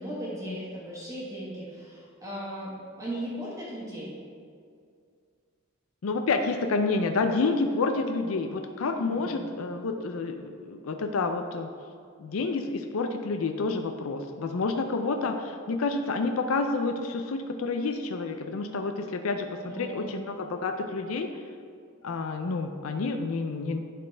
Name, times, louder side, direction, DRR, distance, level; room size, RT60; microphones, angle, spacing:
voice 1, 0.0-4.1 8.9-9.5 19.5-20.1, equal, 15° right, -7 dB, 1.5 m, -37 dB
voice 2, 6.0-11.7 12.2-21.3 22.0-23.8, left 3 dB, 90° left, 6 dB, 0.5 m, -29 dB
10.5 x 4.2 x 3.3 m, 2.2 s
head